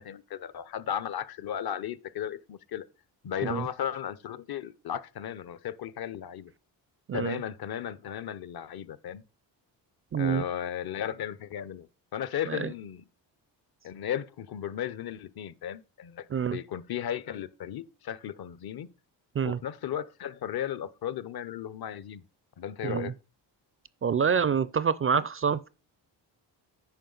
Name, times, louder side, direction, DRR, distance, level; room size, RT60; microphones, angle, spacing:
voice 1, 0.0-2.9 3.2-6.5 7.1-9.2 10.2-11.9 12.1-13.0 13.8-18.9 19.4-22.2 22.6-23.1, left 9 dB, 50° left, 0.8 m, -35 dB
voice 2, 7.1-7.4 10.1-10.4 12.5-12.7 16.3-16.6 19.4-19.6 22.8-23.1 24.0-25.7, right 7 dB, 30° right, 0.4 m, -27 dB
9.1 x 5.2 x 3.9 m
supercardioid pair, 60°, 47 cm